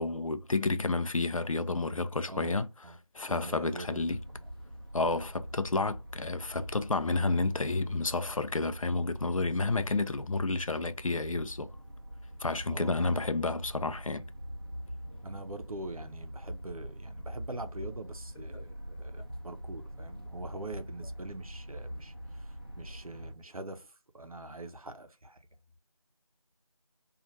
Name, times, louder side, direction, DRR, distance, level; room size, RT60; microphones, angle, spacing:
voice 1, 0.0-2.7 3.1-4.2 4.9-11.7 12.4-14.3 18.5-18.6, left 3 dB, 70° left, 0.4 m, -30 dB
voice 2, 3.3-4.0 12.7-13.1 15.2-23.9 24.1-25.4, right 2 dB, 85° right, 0.7 m, -43 dB
sound 1, 3.8-23.3, equal, 40° right, 0.6 m, -44 dB
2.6 x 2.4 x 3.1 m
figure-of-eight pair, 175°, 18 cm